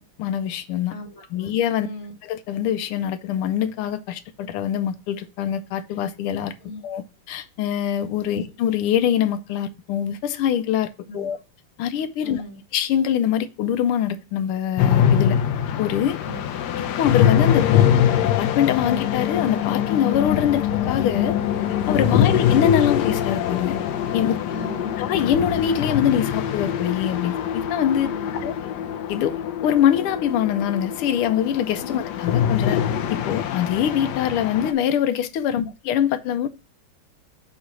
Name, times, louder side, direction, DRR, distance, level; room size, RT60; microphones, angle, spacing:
voice 1, 0.0-0.9 1.3-1.9 2.3-6.5 6.8-11.4 11.8-12.4 12.7-15.4 15.8-16.2 17.0-17.7 18.2-21.4 21.9-23.8 24.1-24.4 25.0-28.6 29.1-32.8 33.1-36.5, left 9 dB, 90° left, 1.5 m, -23 dB
voice 2, 0.9-1.5 1.8-2.1 6.6-6.8 8.3-8.5 11.1-11.4 12.2-12.6 16.2-16.7 22.0-22.3 24.5-25.0 27.9-28.5 31.8-32.0 35.5-35.7, left 2 dB, 40° left, 1.6 m, -37 dB
sound 1, 14.8-34.7, left 9 dB, 75° left, 0.9 m, -23 dB
7.0 x 3.2 x 6.1 m
omnidirectional pair, 2.4 m